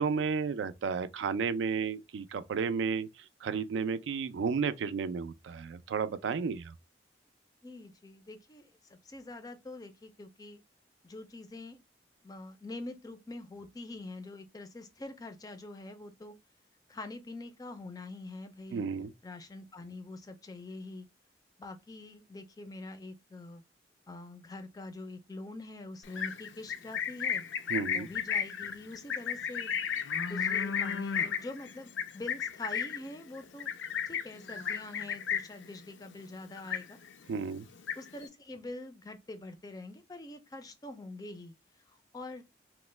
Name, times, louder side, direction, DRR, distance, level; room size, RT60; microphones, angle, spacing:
voice 1, 0.0-3.1 3.4-6.7 18.7-19.1 27.7-28.1 37.3-37.7, right 5 dB, 85° right, 0.3 m, -32 dB
voice 2, 7.6-10.6 11.0-11.8 12.2-16.4 16.9-18.8 19.2-21.1 21.6-23.6 24.1-27.4 27.9-29.7 30.3-33.7 34.1-37.0 38.0-41.5 42.1-42.4, left 2 dB, 20° left, 0.3 m, -45 dB
Livestock farm animals working animals, 26.0-35.7 36.0-36.3 36.6-37.2 37.6-38.3, left 7 dB, 85° left, 0.4 m, -34 dB
3.0 x 2.0 x 3.2 m
head